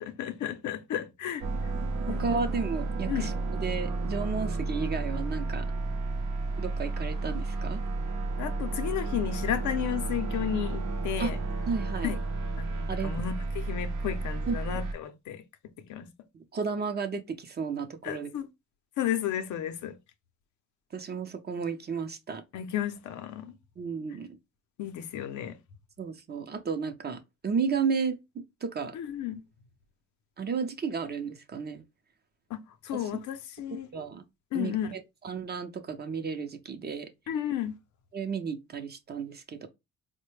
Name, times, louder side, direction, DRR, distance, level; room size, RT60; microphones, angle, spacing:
voice 1, 0.0-1.4 2.1-2.4 3.1-3.3 8.4-11.4 12.0-12.2 12.6-15.4 15.9-16.1 18.0-18.5 19.0-20.0 22.5-23.6 24.8-25.6 28.9-29.4 32.5-33.9 34.5-35.0 37.3-37.7, left 10 dB, 75° left, 0.6 m, -33 dB
sound 1, 1.4-14.9, right 3 dB, 75° right, 0.7 m, -32 dB
voice 2, 2.1-5.7 6.6-7.8 11.2-11.3 11.7-12.1 12.9-13.2 14.5-14.6 16.3-18.3 20.9-22.4 23.8-24.3 26.0-28.2 28.6-29.0 30.4-31.8 33.7-34.2 34.5-37.1 38.1-39.7, right 5 dB, 35° right, 0.6 m, -33 dB
4.1 x 2.1 x 3.1 m
cardioid pair, 90°, 30 cm